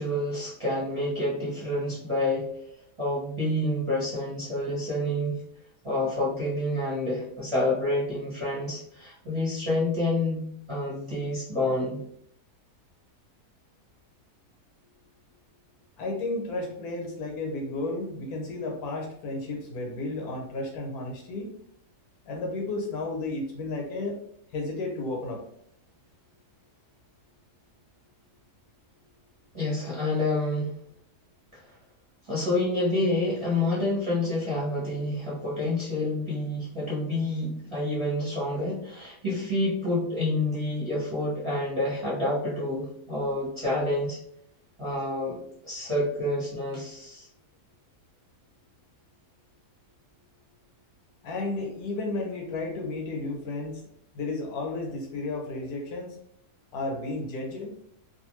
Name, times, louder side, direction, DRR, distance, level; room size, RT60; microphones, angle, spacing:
voice 1, 0.0-2.4 3.0-5.4 5.8-12.0 29.5-30.7 31.5-31.6 32.2-44.2 44.8-47.3, left 1 dB, 25° right, -8 dB, 0.8 m, -28 dB
voice 2, 16.0-21.6 22.3-24.2 24.5-25.4 51.2-53.8 54.1-56.2 56.7-57.8, left 2 dB, 75° left, 1 dB, 1.1 m, -33 dB
2.5 x 2.5 x 3.0 m, 0.69 s
omnidirectional pair, 1.7 m